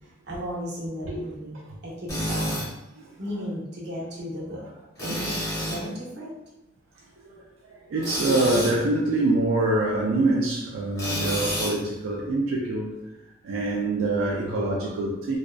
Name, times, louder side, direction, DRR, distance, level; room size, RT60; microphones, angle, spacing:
voice 1, 0.2-1.6 1.8-2.7 3.2-4.6 5.0-6.3, equal, 55° right, -6 dB, 0.8 m, -35 dB
Tools, 2.1-2.7 5.0-5.8 8.0-8.8 11.0-11.8, equal, 15° left, 0.7 m, -29 dB
voice 2, 7.9-12.9 13.4-15.4, right 2 dB, 85° right, -2 dB, 0.3 m, -25 dB
2.5 x 2.2 x 2.2 m, 0.92 s
head